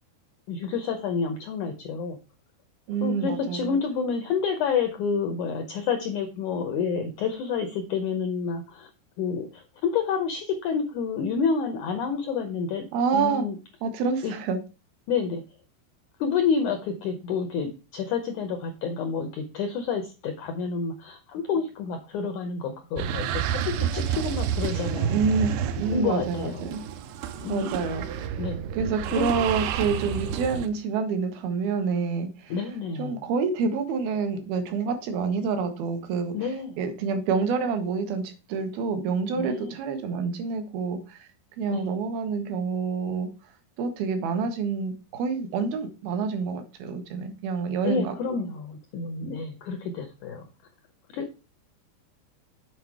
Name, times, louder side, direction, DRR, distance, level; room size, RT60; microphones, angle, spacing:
voice 1, 0.5-2.2 3.0-8.9 9.2-12.8 13.1-13.6 14.2-14.3 15.1-15.4 16.2-25.2 25.9-26.6 27.4-27.8 28.4-28.6 29.1-29.3 32.5-33.2 36.3-36.7 39.4-39.8 41.7-41.9 47.8-50.4 51.1-51.3, left 6 dB, 75° left, 6 dB, 1.8 m, -29 dB
voice 2, 2.9-3.8 12.9-13.4 13.8-14.6 24.6-24.7 25.1-25.5 25.8-26.8 27.5-28.5 28.7-32.5 33.0-36.5 36.8-41.3 41.6-43.3 43.8-48.1, right 5 dB, 75° right, 7 dB, 3.0 m, -27 dB
sound 1, 23.0-30.7, right 9 dB, 90° right, 2.8 m, -30 dB
8.0 x 4.7 x 4.6 m, 0.31 s
omnidirectional pair, 4.7 m